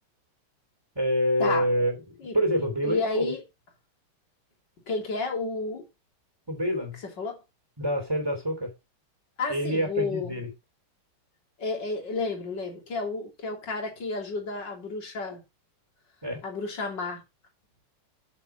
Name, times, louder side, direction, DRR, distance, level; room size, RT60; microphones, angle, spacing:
voice 1, 0.9-3.3 6.5-7.0 7.8-8.7 9.5-10.5 16.2-16.4, equal, 10° right, 3.0 m, -27 dB
voice 2, 2.8-3.4 4.9-5.9 7.0-7.4 9.4-10.4 11.6-15.4 16.4-17.2, left 3 dB, 55° left, 3.8 m, -31 dB
8.3 x 7.1 x 4.3 m
omnidirectional pair, 2.4 m